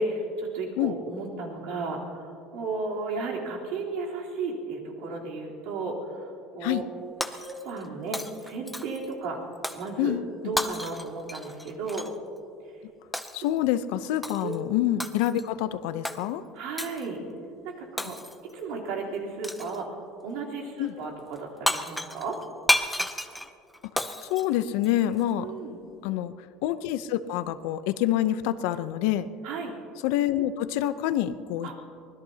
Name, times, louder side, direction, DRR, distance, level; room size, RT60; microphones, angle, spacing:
voice 1, 0.0-6.8 7.3-9.4 9.7-10.1 10.4-12.1 14.4-14.5 16.5-17.2 17.6-18.2 18.5-19.9 20.2-22.4 25.4-25.8 29.4-29.7 31.6-31.7, right 3 dB, 70° right, -3 dB, 3.6 m, -34 dB
Shatter, 7.2-7.9 8.1-9.1 9.6-9.9 10.6-12.1 13.1-13.5 14.2-14.6 15.0-15.5 16.0-16.2 16.8-17.1 18.0-18.5 19.4-19.8 21.4-21.5 21.7-25.2, left 1 dB, ahead, 0.6 m, -31 dB
voice 2, 13.3-16.4 20.8-20.9 24.2-25.5 26.0-26.3 26.6-29.3 30.0-31.7, left 12 dB, 75° left, 12 dB, 0.7 m, -27 dB
24.0 x 20.0 x 2.9 m, 2.6 s
cardioid pair, 165°, 0 cm